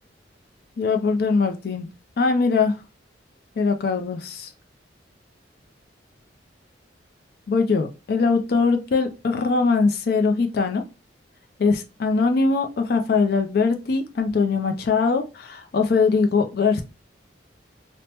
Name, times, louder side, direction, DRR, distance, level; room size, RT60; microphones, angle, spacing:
voice 1, 0.8-1.9 2.2-2.8 3.6-4.5 7.5-10.8 11.6-16.8, left 4 dB, 55° left, 6 dB, 0.4 m, -21 dB
2.9 x 2.0 x 3.1 m, 0.28 s
head